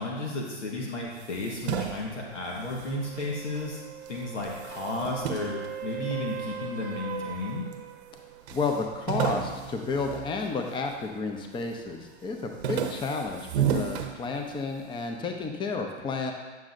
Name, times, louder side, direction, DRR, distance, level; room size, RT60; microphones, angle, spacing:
voice 1, 0.0-3.8 4.1-7.6, left 2 dB, 90° left, -2 dB, 1.5 m, -33 dB
sound 1, 1.1-3.7 4.0-6.6 7.2-7.8 8.1-8.2 8.5-11.1 11.5-11.9 12.2-14.8, right 8 dB, 65° right, 0.9 m, -33 dB
sound 2, 2.8-8.5 12.6-12.7, right 8 dB, 25° right, 0.5 m, -40 dB
voice 2, 8.5-16.3, left 4 dB, 15° left, 3 dB, 0.6 m, -31 dB
9.2 x 6.3 x 2.6 m, 1.3 s
hypercardioid pair, 115°, 35 cm